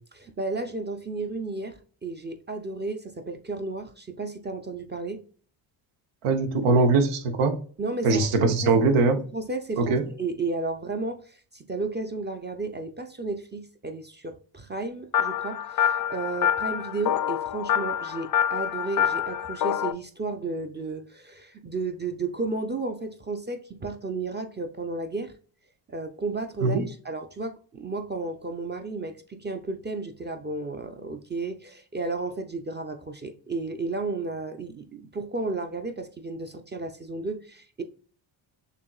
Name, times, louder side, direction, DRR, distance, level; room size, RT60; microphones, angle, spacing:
voice 1, 0.1-5.2 7.8-8.8 9.2-25.3 25.9-37.8, right 3 dB, 20° right, 0.5 m, -33 dB
voice 2, 6.2-7.6 8.0-9.2 9.8-10.0 26.6-26.9, right 3 dB, 90° right, 1.2 m, -21 dB
sound 1, 15.1-19.9, left 9 dB, 45° left, 0.5 m, -26 dB
6.7 x 2.9 x 2.3 m
cardioid pair, 100°, 49 cm